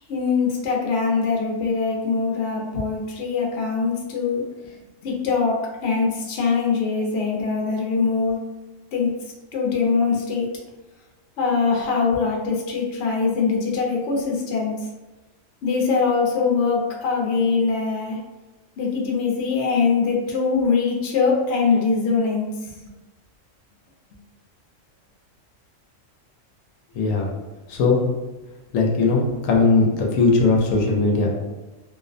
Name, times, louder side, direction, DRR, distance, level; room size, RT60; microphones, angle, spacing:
voice 1, 0.1-4.4 5.0-8.4 8.9-9.1 9.5-10.5 11.4-14.7 15.6-18.2 18.8-22.8, left 5 dB, 65° left, -1 dB, 0.7 m, -22 dB
voice 2, 26.9-27.3 27.7-28.1 28.7-29.9 30.1-31.3, left 3 dB, 85° left, -1 dB, 1.0 m, -19 dB
2.5 x 2.0 x 2.5 m, 1.1 s
omnidirectional pair, 1.3 m